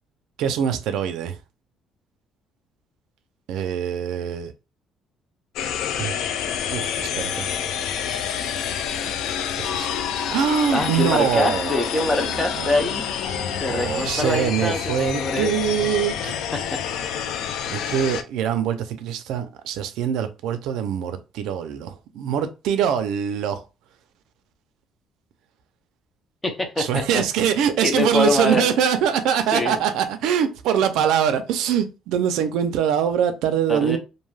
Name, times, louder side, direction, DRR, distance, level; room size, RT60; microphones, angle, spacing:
voice 1, 0.4-1.4 3.5-4.5 6.0-6.2 6.7-7.5 9.6-9.9 10.3-11.8 12.3-12.7 13.3-16.4 17.7-23.6 26.8-34.0, right 8 dB, 80° right, 0.4 m, -23 dB
sound 1, 5.6-18.2, left 8 dB, 75° left, 0.3 m, -28 dB
voice 2, 10.7-13.0 13.6-15.5 16.5-16.8 26.4-27.2 27.8-28.6 29.5-29.8 33.7-34.0, left 2 dB, 15° left, 0.5 m, -24 dB
2.6 x 2.3 x 3.2 m
cardioid pair, 160°, 0 cm